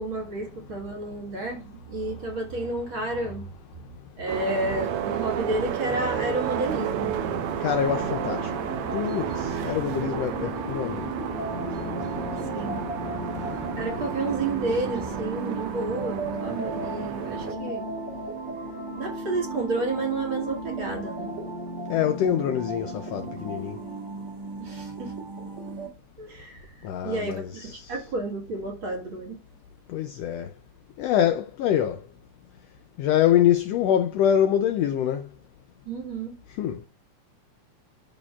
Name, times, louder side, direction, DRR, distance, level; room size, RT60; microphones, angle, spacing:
voice 1, 0.0-3.5 4.2-7.2 9.6-9.7 12.5-12.8 13.8-17.8 18.9-21.3 24.6-25.1 26.2-29.4 35.9-36.3, right 2 dB, 50° right, 2.1 m, -31 dB
sound 1, 4.3-17.5, right 9 dB, 85° right, 1.2 m, -32 dB
sound 2, 5.9-15.2, left 1 dB, 10° right, 1.6 m, -42 dB
sound 3, 6.7-25.9, right 2 dB, 65° right, 3.4 m, -35 dB
voice 2, 7.6-8.5 8.9-11.1 21.9-23.8 26.8-27.9 29.9-30.5 31.0-32.0 33.0-35.3 36.6-36.8, left 10 dB, 80° left, 1.5 m, -25 dB
11.5 x 4.3 x 2.4 m
omnidirectional pair, 3.3 m